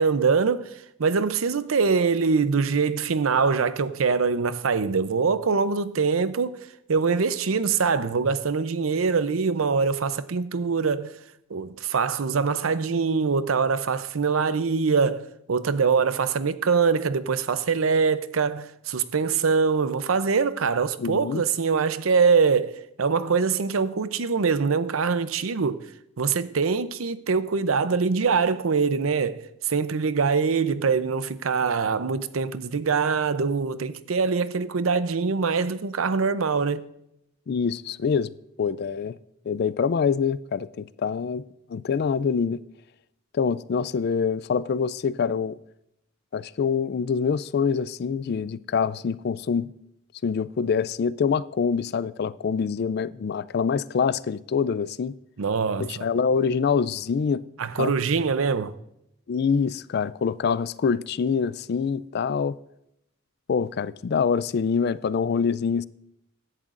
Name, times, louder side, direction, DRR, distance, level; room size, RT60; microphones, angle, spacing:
voice 1, 0.0-11.2 11.5-25.8 26.2-36.9 55.4-56.1 57.6-58.8, right 5 dB, 90° right, 0.6 m, -24 dB
voice 2, 21.0-21.4 37.5-38.3 38.6-39.2 39.5-41.4 41.7-42.6 43.3-45.6 46.3-49.7 50.2-55.1 55.8-57.4 57.8-57.9 59.3-62.6 63.5-65.9, left 6 dB, 50° left, 0.3 m, -25 dB
16.0 x 11.0 x 2.5 m
head